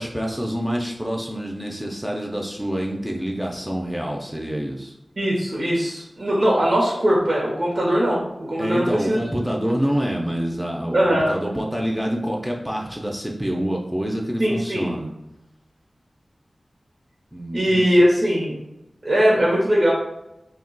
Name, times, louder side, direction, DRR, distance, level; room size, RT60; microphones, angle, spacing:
voice 1, 0.0-4.9 8.6-15.1 17.3-17.8, equal, 5° right, -1 dB, 0.5 m, -27 dB
voice 2, 5.2-9.2 10.9-11.4 14.4-14.9 17.5-18.6 19.0-19.9, equal, 70° right, -4 dB, 0.8 m, -20 dB
2.3 x 2.2 x 3.8 m, 0.91 s
wide cardioid pair, 65°, 0 cm